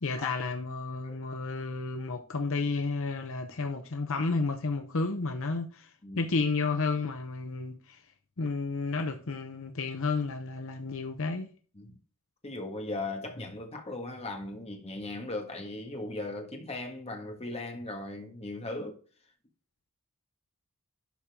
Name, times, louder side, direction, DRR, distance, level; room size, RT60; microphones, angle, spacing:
voice 1, 0.0-5.9 6.1-8.0 8.4-11.5, left 3 dB, 65° left, 0.8 m, -31 dB
voice 2, 12.4-19.0, left 2 dB, 30° left, 1.7 m, -38 dB
11.5 x 4.4 x 3.6 m
head